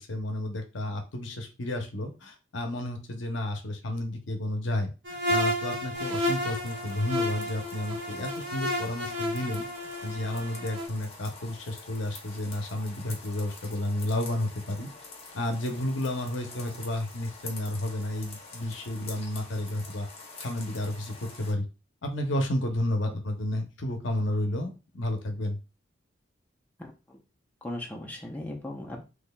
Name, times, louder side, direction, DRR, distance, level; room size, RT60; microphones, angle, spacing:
voice 1, 0.0-9.7 10.0-14.9 15.3-20.1 20.4-21.7 22.0-25.6, left 1 dB, 75° left, 5 dB, 0.8 m, -31 dB
sound 1, 5.1-10.9, left 1 dB, 75° right, 1.2 m, -31 dB
sound 2, 5.9-21.5, left 3 dB, 30° left, 1.0 m, -46 dB
voice 2, 26.8-27.2 27.6-29.0, left 1 dB, 10° left, 0 dB, 0.7 m, -38 dB
4.0 x 3.0 x 2.3 m, 0.30 s
head